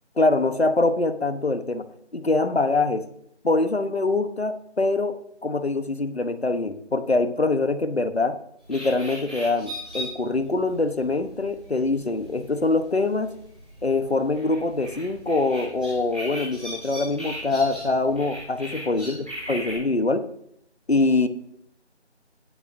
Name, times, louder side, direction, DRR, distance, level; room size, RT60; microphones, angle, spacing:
voice 1, 0.2-1.9 2.1-3.0 3.4-5.2 5.4-8.4 8.7-13.3 13.8-19.2 19.5-20.3 20.9-21.3, left 3 dB, 65° left, 11 dB, 1.2 m, -24 dB
sound 1, 8.6-19.7, equal, 5° right, 1.6 m, -39 dB
21.0 x 8.7 x 2.7 m, 0.74 s
figure-of-eight pair, 175°, 34 cm